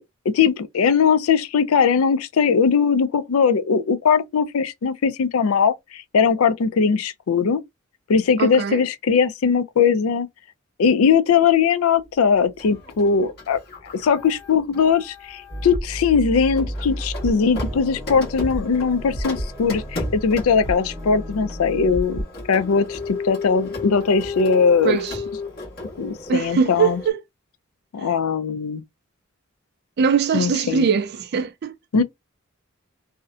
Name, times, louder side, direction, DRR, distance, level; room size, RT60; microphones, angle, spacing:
voice 1, 0.3-7.6 8.1-10.3 10.8-13.6 13.9-22.2 22.5-25.0 26.0-27.0 27.9-28.8 30.3-30.9 31.9-32.0, left 6 dB, 90° left, 0.4 m, -20 dB
voice 2, 8.4-8.8 24.8-25.2 26.3-27.2 30.0-31.7, right 6 dB, 50° right, 0.3 m, -21 dB
Printer, 12.6-15.8 16.5-27.1, left 3 dB, 50° left, 1.1 m, -34 dB
sound 1, 15.5-22.2, equal, 30° left, 1.2 m, -32 dB
2.6 x 2.1 x 2.4 m
head